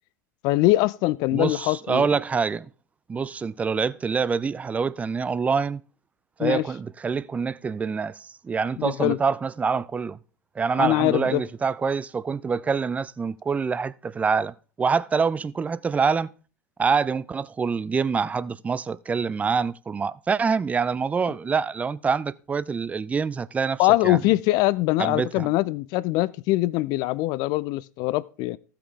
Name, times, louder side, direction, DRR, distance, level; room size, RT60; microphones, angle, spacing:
voice 1, 0.4-2.1 6.4-6.6 8.8-9.2 10.8-11.5 23.8-28.6, left 18 dB, 45° left, 0.5 m, -23 dB
voice 2, 1.3-2.7 3.1-5.8 6.4-8.2 8.4-10.2 10.6-16.3 16.8-24.2 25.0-25.5, right 5 dB, 15° right, 0.4 m, -26 dB
15.0 x 5.7 x 3.4 m
figure-of-eight pair, 90°, 10 cm